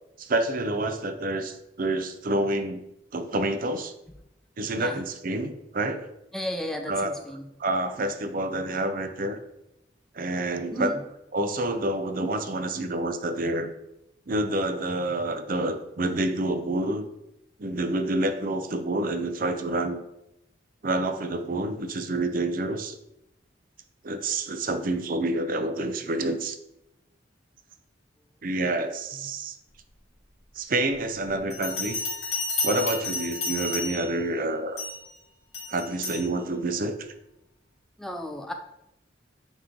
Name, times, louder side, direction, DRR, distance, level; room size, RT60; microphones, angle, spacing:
voice 1, 0.2-2.8 3.1-3.9 4.6-6.1 6.9-7.1 7.6-9.4 10.1-10.9 11.3-13.7 14.3-17.1 17.6-20.0 20.8-23.0 24.0-26.6 28.4-29.5 30.6-32.0 32.6-34.8 35.7-37.0, right 2 dB, 50° right, 8 dB, 0.6 m, -28 dB
voice 2, 6.3-7.5 10.7-11.0 38.0-38.5, left 1 dB, ahead, 4 dB, 0.4 m, -34 dB
Bell, 31.5-34.2 34.8-35.1 35.5-36.3, left 3 dB, 40° left, 2.4 m, -31 dB
9.1 x 3.1 x 3.8 m, 0.85 s
head